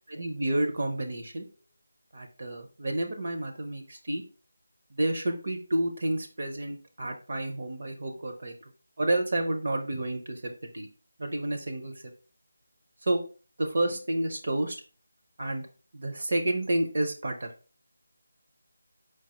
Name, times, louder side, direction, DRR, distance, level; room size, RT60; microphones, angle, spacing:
voice 1, 0.1-1.5 2.1-4.2 4.9-8.5 9.0-10.9 11.2-12.0 13.0-13.2 13.6-14.8 15.4-15.7 15.9-17.5, right 1 dB, 40° right, 3 dB, 0.6 m, -30 dB
4.7 x 2.3 x 4.1 m, 0.36 s
figure-of-eight pair, 175°, 0 cm